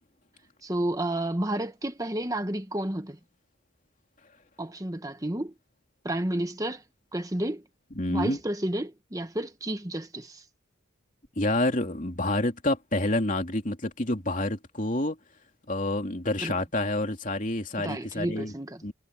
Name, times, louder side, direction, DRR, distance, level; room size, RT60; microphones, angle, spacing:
voice 1, 0.6-3.2 4.6-5.5 6.0-6.8 7.1-7.6 8.1-10.4 16.4-16.6 17.8-18.9, right 1 dB, 15° right, 1.2 m, -31 dB
voice 2, 7.9-8.4 11.4-15.2 15.7-18.5 18.8-18.9, left 1 dB, 40° left, 3.2 m, -28 dB
head